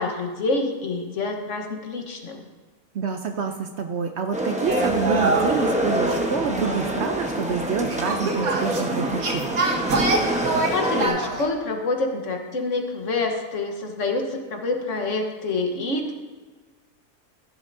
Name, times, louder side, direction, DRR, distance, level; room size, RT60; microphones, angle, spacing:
voice 1, 0.0-2.5 10.7-16.1, left 3 dB, 60° left, 3 dB, 1.4 m, -27 dB
voice 2, 2.9-9.6, right 6 dB, 60° right, 5 dB, 0.8 m, -27 dB
sound 1, 4.3-11.1, right 1 dB, 5° right, 0.9 m, -26 dB
sound 2, 4.6-11.5, right 3 dB, 85° right, 1.6 m, -27 dB
14.5 x 11.0 x 2.6 m, 1.4 s
omnidirectional pair, 1.5 m